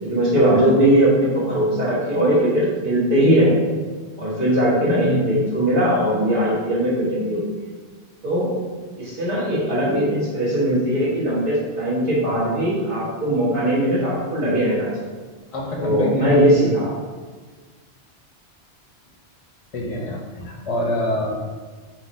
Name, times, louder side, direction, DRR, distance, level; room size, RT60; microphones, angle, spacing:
voice 1, 0.0-3.6 4.2-7.4 8.2-8.5 9.0-15.1 15.8-16.9, right 1 dB, 30° right, -13 dB, 1.3 m, -19 dB
voice 2, 15.5-16.4 19.7-21.4, left 1 dB, 35° left, -1 dB, 0.7 m, -25 dB
3.9 x 2.5 x 4.2 m, 1.4 s
omnidirectional pair, 1.2 m